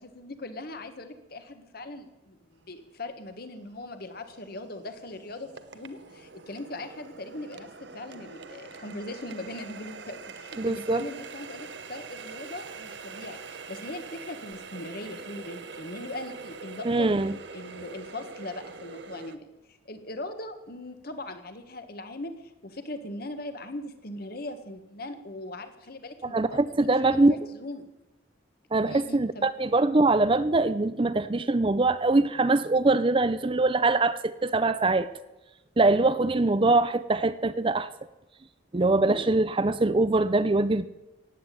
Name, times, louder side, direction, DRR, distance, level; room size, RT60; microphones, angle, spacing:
voice 1, 0.0-17.1 17.5-27.9 28.9-29.4, left 2 dB, 50° left, 1.5 m, -40 dB
Water tap faucet, 2.9-3.0 3.5-19.4, right 4 dB, 60° right, 1.0 m, -44 dB
voice 2, 10.6-11.0 16.8-17.3 26.3-27.4 28.7-35.1 35.8-37.9 38.7-40.8, right 2 dB, 25° right, 0.5 m, -23 dB
16.0 x 9.8 x 8.4 m
head